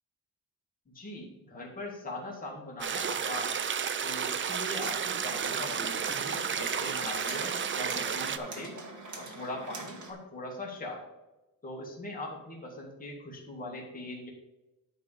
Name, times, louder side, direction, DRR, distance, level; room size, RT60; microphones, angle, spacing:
voice 1, 0.9-3.6 4.0-8.8 9.1-11.0 11.6-14.3, left 1 dB, 25° left, -3 dB, 2.1 m, -41 dB
sound 1, 2.8-8.4, right 7 dB, 35° right, 0.5 m, -32 dB
sound 2, 4.8-10.1, right 3 dB, 55° right, 1.6 m, -44 dB
10.0 x 3.5 x 6.7 m, 1.0 s
wide cardioid pair, 130°, 35 cm